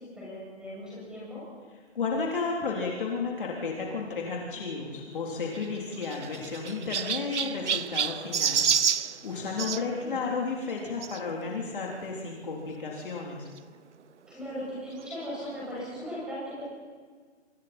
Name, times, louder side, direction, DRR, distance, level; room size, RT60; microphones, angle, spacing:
voice 1, 0.0-1.4 7.2-7.6 9.4-10.2 14.3-16.6, equal, ahead, -8 dB, 7.7 m, -39 dB
voice 2, 2.0-13.5, left 4 dB, 50° left, -2 dB, 3.5 m, -33 dB
Chirp tweet, 5.5-9.8 11.0-11.2 11.9-12.0 12.2-12.3 13.6-13.7, right 7 dB, 90° right, 0.8 m, -29 dB
27.5 x 25.0 x 4.4 m, 1.5 s
hypercardioid pair, 170°, 34 cm